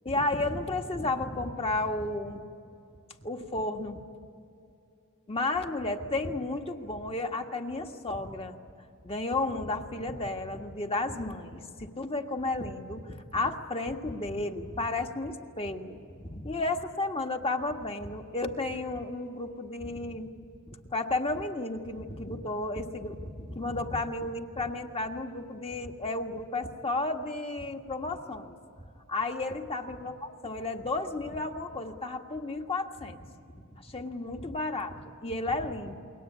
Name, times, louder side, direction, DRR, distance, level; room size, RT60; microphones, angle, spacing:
voice 1, 0.0-2.4 3.2-4.0 5.3-8.6 9.0-20.3 20.7-28.6 29.1-36.0, left 2 dB, 25° left, 4 dB, 1.7 m, -33 dB
29.5 x 22.5 x 8.4 m, 2.6 s
head